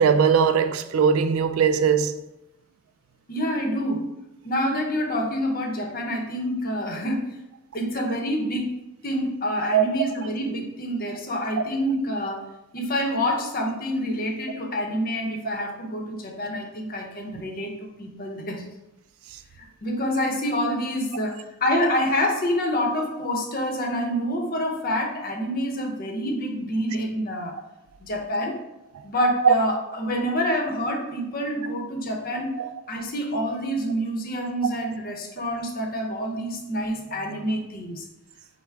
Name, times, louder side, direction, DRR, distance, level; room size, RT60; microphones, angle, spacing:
voice 1, 0.0-2.2 9.7-9.8 28.9-29.1 29.4-29.5 32.6-32.7, right 7 dB, 70° right, 0.3 m, -19 dB
voice 2, 3.3-4.1 4.4-7.4 7.7-12.5 12.7-18.6 19.6-27.5 28.0-28.6 29.0-32.5 32.9-38.1, equal, 40° left, 0.7 m, -27 dB
5.6 x 2.1 x 4.6 m
head